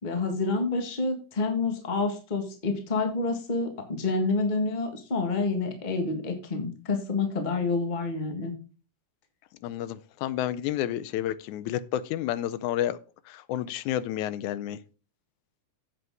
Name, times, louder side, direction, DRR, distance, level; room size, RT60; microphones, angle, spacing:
voice 1, 0.0-8.5, left 3 dB, 25° left, 1.0 m, -28 dB
voice 2, 9.6-13.0 13.3-14.8, left 12 dB, 85° left, 2.0 m, -30 dB
8.1 x 7.8 x 4.7 m
omnidirectional pair, 3.5 m